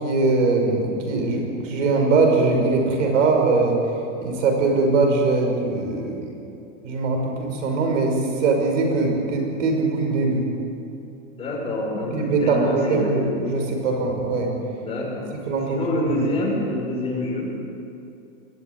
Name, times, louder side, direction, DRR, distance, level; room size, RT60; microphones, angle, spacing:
voice 1, 0.0-3.8 4.2-6.2 6.8-10.4 12.1-14.5 15.5-16.1, right 3 dB, 70° right, 2 dB, 6.0 m, -21 dB
voice 2, 11.4-12.1 12.4-13.1 14.8-15.3 15.7-17.5, left 1 dB, 15° left, -3 dB, 5.2 m, -26 dB
22.5 x 14.0 x 9.7 m, 2.7 s
supercardioid pair, 165°, 38 cm